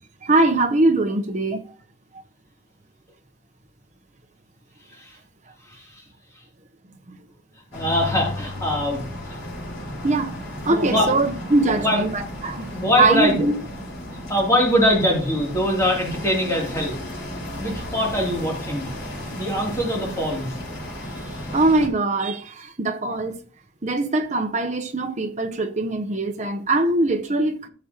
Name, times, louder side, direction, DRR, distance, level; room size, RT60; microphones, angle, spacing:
voice 1, 0.2-1.6 7.1-7.2 10.0-10.3 10.6-12.6 13.0-13.5 21.1-23.3 23.8-27.7, right 2 dB, 35° right, 0.9 m, -22 dB
voice 2, 5.7-6.0 7.7-9.0 9.3-9.4 10.7-11.1 11.8-12.0 12.7-13.4 14.3-17.0 17.6-18.9 19.3-20.5, left 1 dB, 15° left, 3.1 m, -22 dB
sound 1, 7.7-21.9, left 1 dB, 75° left, 5.0 m, -34 dB
14.5 x 7.2 x 3.0 m
head